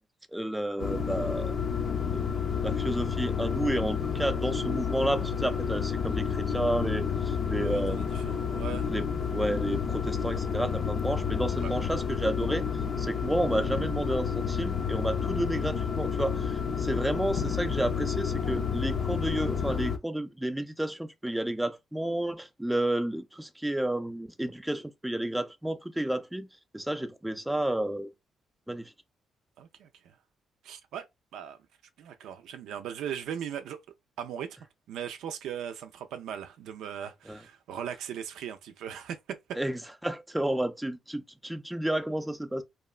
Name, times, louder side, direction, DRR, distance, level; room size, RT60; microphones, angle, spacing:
voice 1, 0.3-1.5 2.1-2.2 2.6-8.1 8.9-12.7 13.0-26.5 26.7-28.1 28.7-28.9 37.3-37.4 39.6-42.6, right 1 dB, 5° right, 0.4 m, -31 dB
sound 1, 0.8-20.0, left 6 dB, 50° left, 0.5 m, -30 dB
voice 2, 7.6-8.9 29.6-30.1 30.6-31.0 31.3-31.6 32.0-33.8 34.2-34.6 34.9-39.6, right 9 dB, 80° right, 0.4 m, -38 dB
2.9 x 2.2 x 2.3 m
cardioid pair, 90°, 0 cm